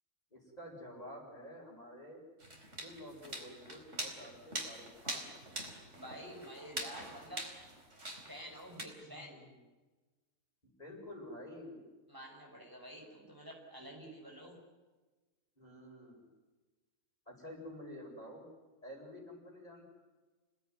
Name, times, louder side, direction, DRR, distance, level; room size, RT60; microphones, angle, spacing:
voice 1, 0.3-2.2 2.8-5.4 9.0-9.6 10.6-11.9 15.6-16.3 17.3-18.5 18.8-19.9, left 1 dB, 30° left, -1 dB, 7.9 m, -50 dB
sound 1, 2.4-8.8, right 1 dB, 55° right, 4.8 m, -44 dB
voice 2, 5.9-7.5 8.3-9.4 12.1-14.6, equal, 15° right, -1 dB, 6.7 m, -49 dB
29.5 x 18.5 x 9.8 m, 1.2 s
omnidirectional pair, 1.5 m